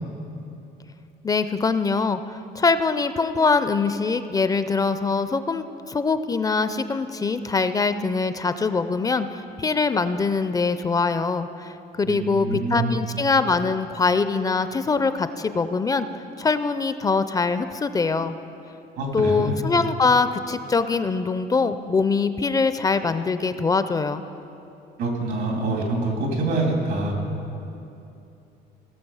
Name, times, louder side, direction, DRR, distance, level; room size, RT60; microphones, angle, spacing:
voice 1, 1.2-16.1 16.4-18.4 19.1-24.2, left 4 dB, 20° left, 11 dB, 0.4 m, -23 dB
voice 2, 12.0-13.0 19.0-19.6 25.0-27.2, right 2 dB, 85° right, 0 dB, 2.7 m, -25 dB
17.0 x 6.7 x 5.5 m, 2.8 s
cardioid pair, 110°, 17 cm